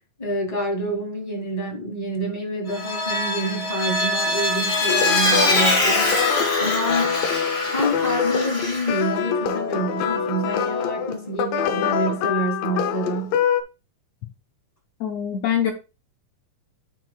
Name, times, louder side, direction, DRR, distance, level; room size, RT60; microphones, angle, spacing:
voice 1, 0.2-7.2 7.6-13.4, right 1 dB, 15° left, 1.8 m, -27 dB
Vehicle, 2.7-9.1, left 2 dB, 50° left, 0.7 m, -23 dB
sound 1, 4.9-13.6, left 7 dB, 90° left, 2.5 m, -25 dB
voice 2, 15.0-15.7, left 9 dB, 70° left, 1.7 m, -23 dB
9.8 x 6.5 x 2.3 m
omnidirectional pair, 3.9 m